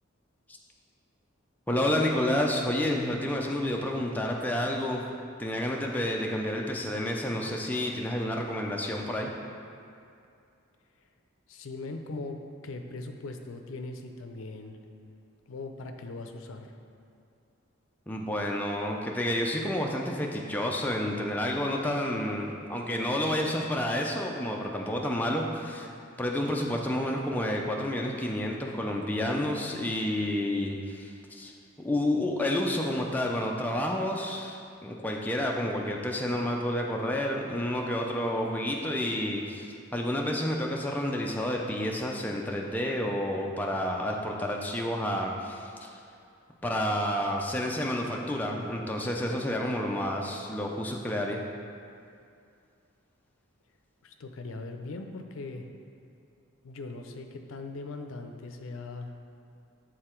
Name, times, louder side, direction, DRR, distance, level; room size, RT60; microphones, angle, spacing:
voice 1, 1.7-5.0 5.4-9.3 18.1-25.9 26.2-31.5 31.8-46.0 46.6-51.4, left 1 dB, 10° left, 0 dB, 0.4 m, -30 dB
voice 2, 11.5-14.8 15.5-16.8 54.0-55.7 56.6-59.1, left 3 dB, 75° left, 5 dB, 0.5 m, -40 dB
6.8 x 3.8 x 4.4 m, 2.4 s
head